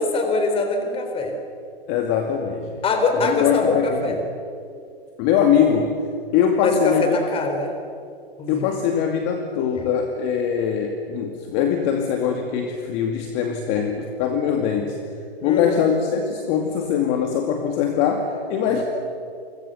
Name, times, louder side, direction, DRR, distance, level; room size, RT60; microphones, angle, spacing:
voice 1, 0.0-1.4 2.8-4.2 6.6-7.7 8.4-8.7 9.8-9.9 15.4-15.9 18.7-18.8, left 3 dB, 15° left, 5 dB, 4.2 m, -23 dB
voice 2, 1.9-2.7 3.2-4.2 5.2-6.0 6.3-7.2 8.5-15.0 15.4-18.8, left 7 dB, 35° left, 3 dB, 2.4 m, -22 dB
29.5 x 25.5 x 7.0 m, 2.4 s
hypercardioid pair, 140°, 31 cm